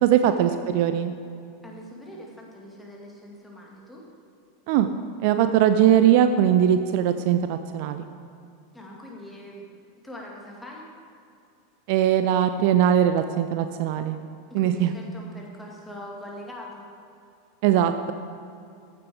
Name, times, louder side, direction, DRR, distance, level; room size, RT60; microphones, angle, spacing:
voice 1, 0.0-1.1 4.7-4.9 5.2-8.1 11.9-14.2 14.5-14.9 17.6-18.1, right 10 dB, 50° right, 9 dB, 0.4 m, -20 dB
voice 2, 1.6-4.0 8.7-9.6 10.0-10.8 14.5-16.8, left 1 dB, 10° left, -2 dB, 2.1 m, -42 dB
14.5 x 6.7 x 3.6 m, 2.6 s
figure-of-eight pair, 85°, 0 cm